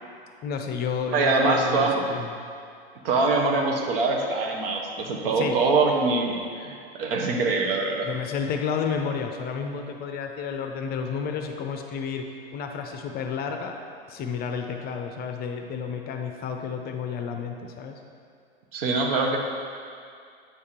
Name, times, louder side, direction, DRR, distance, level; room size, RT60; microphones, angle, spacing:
voice 1, 0.4-2.3 5.4-5.6 8.1-12.3 12.5-13.7 14.1-18.0, left 6 dB, 30° left, 4 dB, 0.5 m, -31 dB
voice 2, 1.1-2.0 3.0-8.1 18.7-19.4, right 3 dB, 65° right, 2 dB, 1.0 m, -24 dB
8.6 x 3.6 x 4.3 m, 2.3 s
hypercardioid pair, 100°, 31 cm